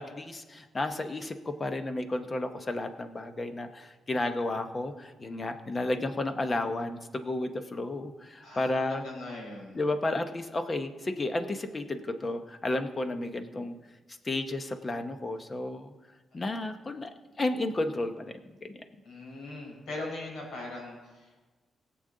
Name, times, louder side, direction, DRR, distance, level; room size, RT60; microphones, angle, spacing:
voice 1, 0.0-9.0 9.7-13.7 14.2-15.9 16.3-17.1 17.4-18.7, left 2 dB, 20° left, 8 dB, 0.8 m, -32 dB
voice 2, 8.4-9.8 16.3-16.5 19.0-21.4, left 2 dB, 70° left, 0 dB, 4.5 m, -40 dB
22.0 x 7.8 x 3.8 m, 1.2 s
wide cardioid pair, 175°, 0 cm